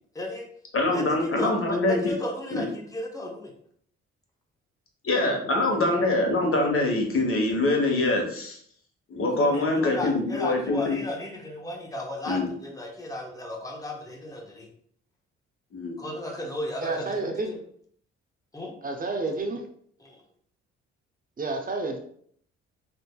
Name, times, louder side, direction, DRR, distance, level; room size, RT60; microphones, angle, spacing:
voice 1, 0.1-0.5 0.9-3.5 5.2-5.6 9.3-14.7 16.0-17.6 18.5-18.7 20.0-20.2, left 1 dB, 10° left, 0 dB, 1.0 m, -35 dB
voice 2, 0.7-2.0 2.5-2.6 5.0-8.6 9.1-11.0 12.3-12.5 15.7-16.0, left 2 dB, 45° left, 1 dB, 1.2 m, -24 dB
voice 3, 16.8-17.5 18.8-19.7 21.4-22.0, right 3 dB, 30° right, 3 dB, 0.8 m, -30 dB
3.7 x 2.7 x 2.3 m, 0.62 s
supercardioid pair, 55°, 30 cm